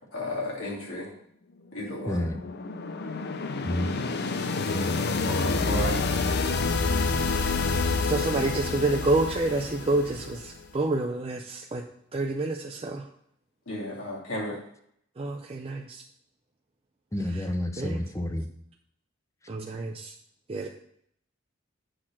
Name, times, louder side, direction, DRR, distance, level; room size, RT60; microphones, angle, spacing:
voice 1, 0.1-1.1 1.7-2.3 5.2-6.0 13.7-14.6, left 1 dB, 80° left, -3 dB, 2.8 m, -33 dB
sound 1, 1.8-10.7, left 3 dB, 55° left, 0.6 m, -28 dB
voice 2, 2.1-2.4 3.6-3.9 17.1-18.5, left 1 dB, 15° left, 7 dB, 0.6 m, -29 dB
voice 3, 8.0-11.8 12.1-13.0 15.2-16.0 17.8-18.0 19.5-20.1 20.5-20.7, right 2 dB, 30° right, 2 dB, 0.5 m, -28 dB
7.7 x 4.4 x 6.0 m, 0.69 s
head